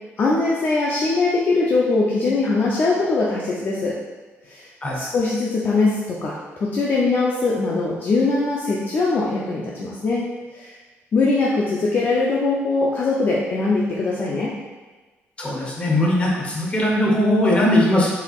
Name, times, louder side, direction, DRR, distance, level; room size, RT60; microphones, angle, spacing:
voice 1, 0.2-4.0 4.5-4.6 4.9-10.2 10.5-10.8 11.1-14.5, left 3 dB, 45° left, -4 dB, 0.5 m, -21 dB
voice 2, 15.4-18.1, left 1 dB, 25° left, -3 dB, 0.9 m, -19 dB
4.5 x 3.5 x 2.4 m, 1.3 s
cardioid pair, 120°, 5 cm